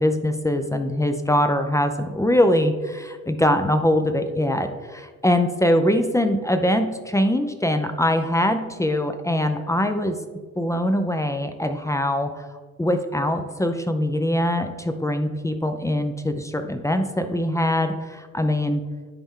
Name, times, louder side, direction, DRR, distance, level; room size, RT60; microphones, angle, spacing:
voice 1, 0.0-10.2 10.6-12.4 12.8-18.8, left 1 dB, 10° left, 7 dB, 0.5 m, -22 dB
10.5 x 4.2 x 3.7 m, 1.4 s
cardioid pair, 90°, 30 cm